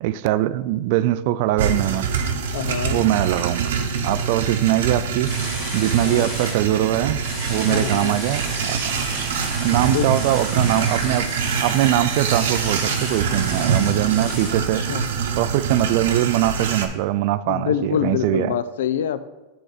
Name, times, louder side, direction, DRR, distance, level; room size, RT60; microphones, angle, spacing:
voice 1, 0.0-2.1 2.9-3.7 4.0-8.8 9.6-11.3 11.6-14.8 15.4-18.6, right 14 dB, 50° right, 0.3 m, -22 dB
sound 1, 1.6-16.9, right 6 dB, 80° right, 0.9 m, -25 dB
voice 2, 2.5-3.0 6.0-6.3 7.7-8.2 9.9-10.3 14.5-15.0 17.5-19.3, left 9 dB, 85° left, 0.4 m, -26 dB
sound 2, 5.2-6.6 7.2-14.5, left 2 dB, 15° left, 2.1 m, -34 dB
8.5 x 3.9 x 5.0 m
supercardioid pair, 155°, 0 cm